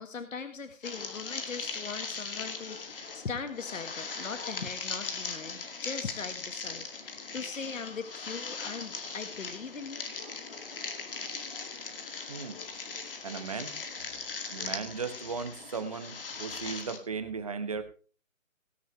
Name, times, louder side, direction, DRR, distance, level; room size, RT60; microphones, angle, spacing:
voice 1, 0.0-10.1, left 5 dB, 70° left, 9 dB, 1.6 m, -40 dB
sound 1, 0.8-17.0, left 4 dB, 40° left, 2.3 m, -39 dB
voice 2, 13.2-14.1 14.5-17.8, right 5 dB, 25° right, 9 dB, 1.1 m, -37 dB
17.5 x 10.5 x 3.2 m, 0.37 s
hypercardioid pair, 170°, 41 cm